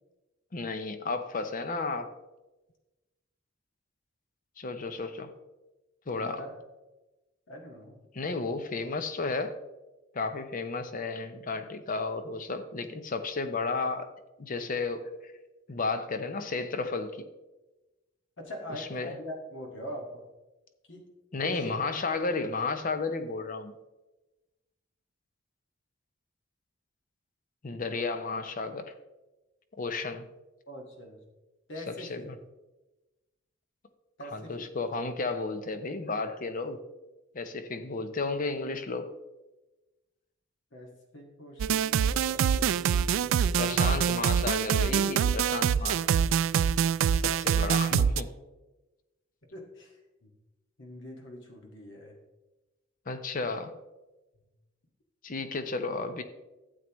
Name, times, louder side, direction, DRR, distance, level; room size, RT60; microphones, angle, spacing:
voice 1, 0.5-2.1 4.6-5.3 6.1-6.4 8.1-9.6 10.1-14.1 14.4-15.3 15.7-17.3 18.7-19.1 21.3-23.8 27.6-28.9 29.8-30.3 31.9-32.4 34.2-36.8 37.3-39.1 43.6-46.3 47.2-48.3 53.1-53.8 55.2-56.2, left 3 dB, 45° left, 9 dB, 0.6 m, -33 dB
voice 2, 6.2-6.5 7.5-8.0 18.4-20.2 20.9-21.8 30.7-31.2 31.7-32.3 34.2-34.8 40.7-44.0 49.5-50.3 50.8-52.2 54.3-54.5, equal, 65° left, 1 dB, 1.9 m, -43 dB
sound 1, 41.6-48.2, right 8 dB, 80° right, 0.3 m, -25 dB
12.5 x 8.1 x 3.1 m, 1.1 s
head